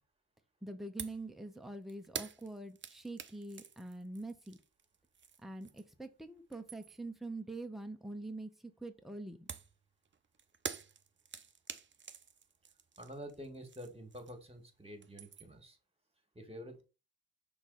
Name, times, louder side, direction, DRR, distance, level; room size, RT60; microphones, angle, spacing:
voice 1, 0.6-4.6 5.4-9.5, right 2 dB, ahead, 5 dB, 1.1 m, -45 dB
sound 1, 1.0-1.3 1.5-6.0 6.4-7.1 9.5-14.6 14.9-15.6, right 6 dB, 35° right, 0.8 m, -47 dB
voice 2, 13.0-15.8 16.3-16.8, equal, 15° right, 6 dB, 2.1 m, -48 dB
6.0 x 3.9 x 4.1 m, 0.31 s
hypercardioid pair, 45°, 33 cm